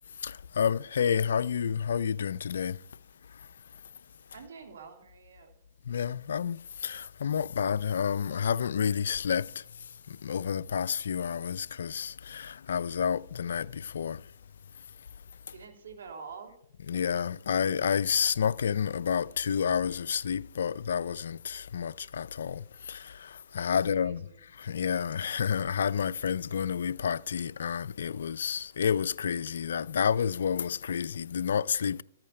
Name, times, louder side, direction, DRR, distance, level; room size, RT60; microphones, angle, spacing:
voice 1, 0.2-2.8 3.3-3.5 5.9-9.6 10.1-14.2 16.9-24.3 24.5-32.0, left 7 dB, 75° left, 0.4 m, -30 dB
voice 2, 4.3-5.6 15.5-16.6 23.7-24.4, right 5 dB, 80° right, 2.8 m, -47 dB
14.0 x 8.8 x 6.5 m
hypercardioid pair, 135°, 0 cm